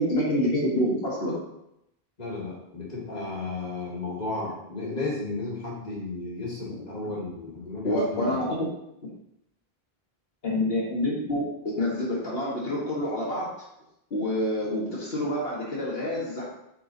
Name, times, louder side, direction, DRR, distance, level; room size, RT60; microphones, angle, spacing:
voice 1, 0.0-1.4 7.8-8.7 9.0-9.1 10.4-13.6 14.1-16.4, left 1 dB, 70° left, -5 dB, 1.8 m, -27 dB
voice 2, 2.2-8.5, left 3 dB, 40° left, -5 dB, 2.1 m, -34 dB
7.5 x 4.5 x 4.1 m, 0.83 s
omnidirectional pair, 1.0 m